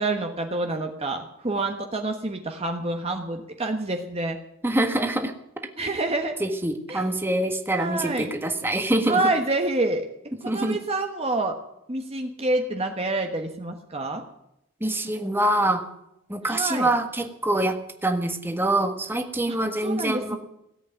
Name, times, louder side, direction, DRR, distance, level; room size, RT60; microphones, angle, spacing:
voice 1, 0.0-4.4 5.8-6.3 6.9-7.0 7.8-8.3 9.1-10.0 10.4-11.6 11.9-14.2 16.5-16.9 19.5-19.6 19.8-20.4, right 2 dB, 30° right, 4 dB, 1.3 m, -27 dB
voice 2, 4.6-5.3 6.4-9.2 10.4-10.8 14.8-15.8 16.3-20.4, right 1 dB, 10° right, 5 dB, 1.5 m, -25 dB
17.5 x 8.5 x 9.5 m, 0.81 s
head